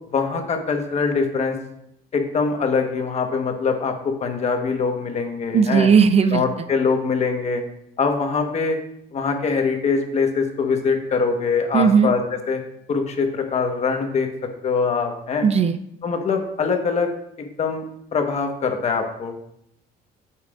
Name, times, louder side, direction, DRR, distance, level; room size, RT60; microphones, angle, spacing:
voice 1, 0.1-1.6 2.1-5.9 6.3-7.6 8.0-8.8 9.1-12.6 12.9-14.3 14.6-15.5 16.0-17.1 17.4-17.8 18.1-19.3, left 5 dB, 40° left, 4 dB, 1.2 m, -23 dB
voice 2, 5.5-6.4 11.7-12.1 15.4-15.8, right 6 dB, 40° right, 10 dB, 0.5 m, -16 dB
8.5 x 7.2 x 2.5 m, 0.77 s
cardioid pair, 110°, 17 cm